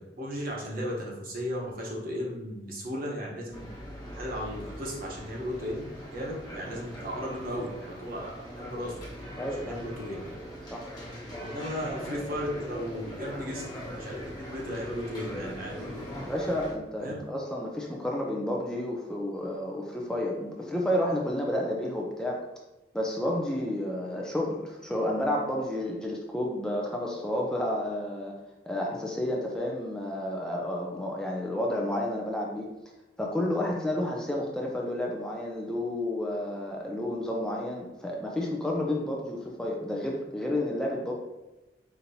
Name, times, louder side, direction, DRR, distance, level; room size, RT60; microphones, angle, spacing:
voice 1, 0.0-3.7 4.1-5.9 6.1-9.0 9.5-10.2 11.4-16.3 17.0-17.2, equal, 55° right, -2 dB, 1.0 m, -35 dB
sound 1, 3.5-16.7, equal, 25° left, 1.2 m, -41 dB
voice 2, 9.4-9.8 10.7-10.8 16.2-22.4 22.9-28.3 28.7-32.7 33.2-41.1, left 1 dB, 5° left, -2 dB, 0.4 m, -31 dB
5.1 x 2.8 x 2.7 m, 1.0 s
head